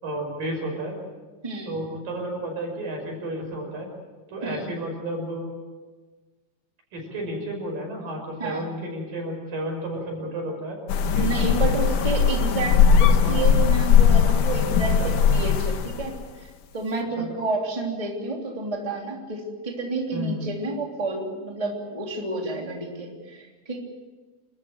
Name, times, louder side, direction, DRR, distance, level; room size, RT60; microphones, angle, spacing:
voice 1, 0.0-1.0 1.7-3.9 4.3-5.5 6.9-10.8 11.1-11.7 13.2-13.4 15.0-15.1 17.2-17.3 20.1-20.4, right 1 dB, 75° right, 1 dB, 7.4 m, -32 dB
voice 2, 1.4-1.8 4.4-4.7 8.4-8.6 11.2-23.8, right 2 dB, 10° right, 0 dB, 2.9 m, -30 dB
sound 1, 10.9-16.2, left 7 dB, 70° left, 2.6 m, -19 dB
29.0 x 14.0 x 7.9 m, 1.3 s
omnidirectional pair, 3.9 m